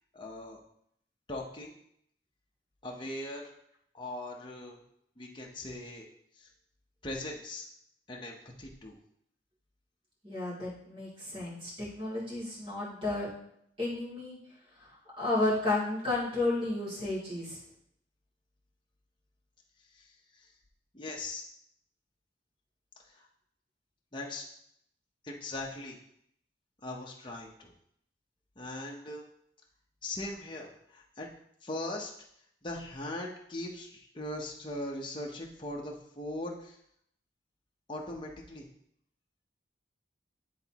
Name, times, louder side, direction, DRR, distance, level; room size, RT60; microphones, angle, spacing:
voice 1, 0.1-0.6 1.3-1.8 2.8-3.5 3.9-4.8 5.2-6.1 6.4-6.5 7.0-7.7 8.1-9.0 19.9-20.5 20.9-21.4 23.1-23.3 24.1-24.4 25.2-26.0 26.8-27.7 28.6-29.2 30.0-31.3 31.6-32.1 32.6-36.8 37.9-38.7, left 1 dB, 25° left, -1 dB, 0.9 m, -40 dB
voice 2, 10.2-13.3 13.8-14.4 15.2-17.6, left 2 dB, 30° right, -7 dB, 2.6 m, -32 dB
10.5 x 4.0 x 2.9 m, 0.71 s
head